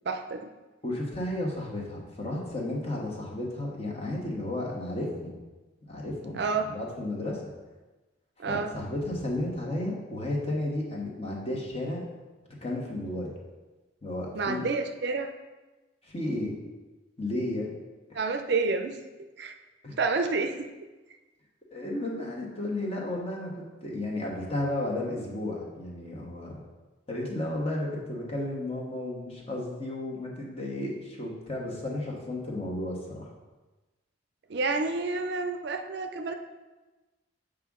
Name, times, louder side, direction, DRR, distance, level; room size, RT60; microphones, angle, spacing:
voice 1, 0.1-0.5 6.3-6.7 8.4-8.7 14.3-15.3 18.1-19.5 20.0-20.7 34.5-36.3, right 4 dB, 55° right, 6 dB, 0.4 m, -29 dB
voice 2, 0.8-5.4 5.9-6.4 6.7-7.4 8.5-12.0 12.6-13.3 14.0-14.7 16.0-16.6 17.2-17.7 19.8-20.0 21.7-26.6 27.1-33.3, left 1 dB, 30° left, -3 dB, 1.3 m, -33 dB
7.8 x 5.0 x 3.6 m, 1.2 s
head